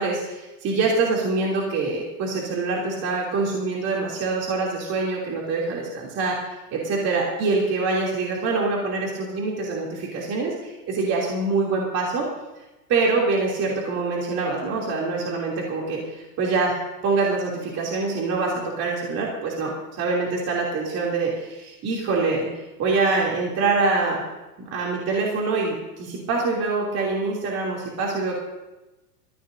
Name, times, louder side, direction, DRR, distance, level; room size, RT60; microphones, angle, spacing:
voice 1, 0.0-6.4 6.7-12.3 12.9-22.5 22.8-24.2 24.7-28.3, right 3 dB, 30° right, -3 dB, 3.0 m, -25 dB
21.5 x 14.5 x 2.7 m, 1.0 s
supercardioid pair, 140°, 47 cm